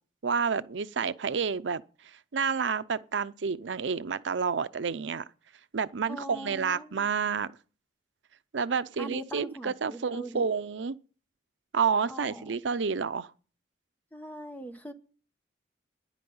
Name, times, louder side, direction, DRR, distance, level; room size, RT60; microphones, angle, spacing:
voice 1, 0.2-5.3 5.7-7.5 8.5-11.0 11.7-13.3, right 5 dB, 80° right, 0.6 m, -29 dB
voice 2, 6.1-7.1 9.0-10.5 12.1-12.5 14.1-14.9, right 1 dB, 10° left, 1.0 m, -41 dB
10.5 x 9.1 x 8.5 m
head